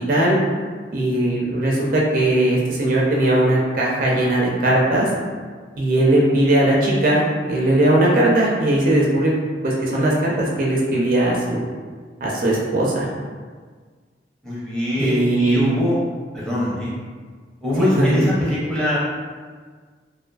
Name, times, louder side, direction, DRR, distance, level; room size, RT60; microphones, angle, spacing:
voice 1, 0.9-5.1 5.8-9.3 9.6-11.6 12.2-13.1 15.0-15.6 17.8-18.2, right 1 dB, 50° right, -4 dB, 0.4 m, -19 dB
voice 2, 14.4-16.0 16.3-16.9 17.6-19.0, left 1 dB, 5° left, -9 dB, 0.5 m, -23 dB
2.4 x 2.4 x 2.3 m, 1.6 s
head